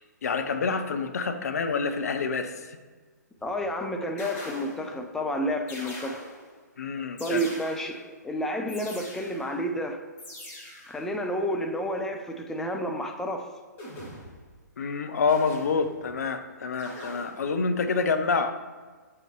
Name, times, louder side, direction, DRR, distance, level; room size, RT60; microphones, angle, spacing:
voice 1, 0.2-2.5 6.8-7.4 14.8-18.5, left 5 dB, 60° left, 8 dB, 0.6 m, -27 dB
sound 1, 3.4-3.7 4.2-5.0 5.7-6.6 7.2-8.1 8.7-9.6 10.2-11.0 13.8-14.5 15.3-16.1 16.8-17.6, left 1 dB, 20° left, 1.7 m, -43 dB
voice 2, 3.4-6.2 7.2-10.0 10.9-13.5, equal, 5° left, 3 dB, 0.4 m, -30 dB
7.7 x 4.8 x 2.9 m, 1.4 s
figure-of-eight pair, 125°, 10 cm